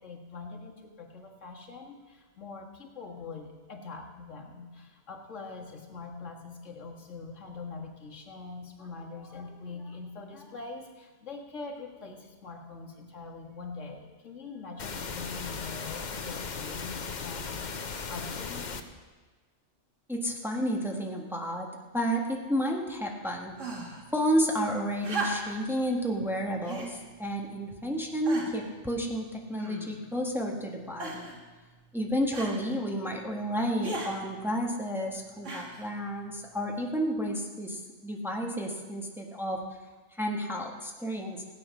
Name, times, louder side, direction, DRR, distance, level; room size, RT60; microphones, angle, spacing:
voice 1, 0.0-17.5 18.1-18.8, left 4 dB, 80° left, 0 dB, 2.1 m, -43 dB
sound 1, 14.8-18.8, left 5 dB, 45° left, 0.8 m, -37 dB
voice 2, 20.1-21.7 21.9-23.6 24.1-31.3 31.9-39.6 40.2-41.4, equal, ahead, 0 dB, 1.4 m, -31 dB
sound 2, 23.6-24.1 25.0-25.7 26.6-27.0 27.7-27.8 28.2-28.7 29.5-30.1 31.0-31.4 32.3-32.6 33.8-34.1 35.4-35.9 36.9-37.0, right 3 dB, 80° right, 2.4 m, -36 dB
16.5 x 9.1 x 6.2 m, 1.4 s
omnidirectional pair, 1.3 m